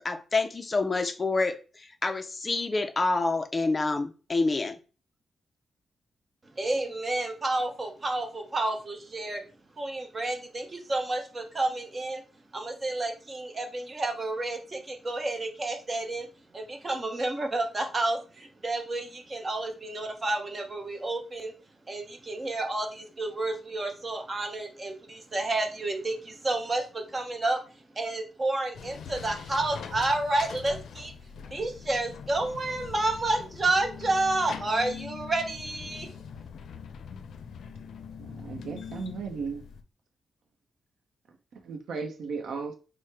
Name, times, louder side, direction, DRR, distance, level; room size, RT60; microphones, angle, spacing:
voice 1, 0.0-4.8, left 3 dB, 25° left, 0.4 m, -27 dB
voice 2, 6.5-9.4 9.8-12.2 12.5-16.3 16.5-21.5 21.9-27.6 28.0-31.1 31.5-36.1, right 2 dB, 25° right, 0.8 m, -30 dB
sound 1, 28.7-39.8, left 6 dB, 80° left, 0.4 m, -42 dB
voice 3, 38.2-39.7 41.5-42.7, right 5 dB, 80° right, 0.7 m, -36 dB
4.5 x 2.1 x 4.6 m
wide cardioid pair, 155°, 0 cm